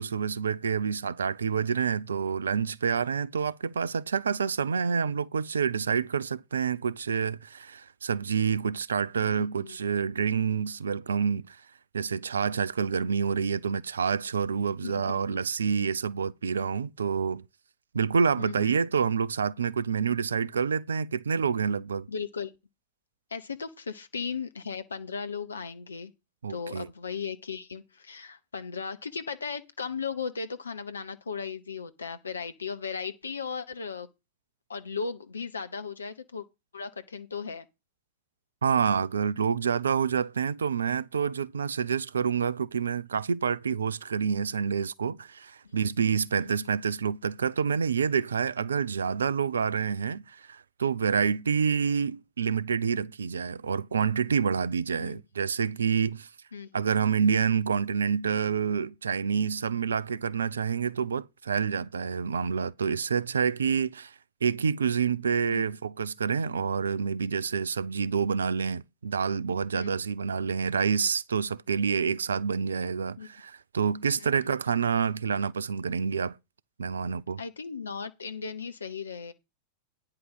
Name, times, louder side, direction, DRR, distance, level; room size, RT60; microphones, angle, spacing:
voice 1, 0.0-11.6 11.9-17.4 17.9-22.1 26.4-26.9 38.6-56.3 56.7-64.1 64.4-76.4 76.8-77.4, right 6 dB, 70° right, 0.5 m, -28 dB
voice 2, 9.2-9.8 14.8-15.2 18.4-18.8 22.1-22.6 23.3-26.1 26.5-34.1 34.7-36.4 36.7-37.7 45.6-45.7 46.4-46.7 55.0-55.2 56.5-56.7 65.5-65.6 69.7-70.0 73.2-73.3 74.2-74.5 77.4-79.3, left 5 dB, 75° left, 0.8 m, -36 dB
9.5 x 4.8 x 7.8 m
figure-of-eight pair, 90°, 0 cm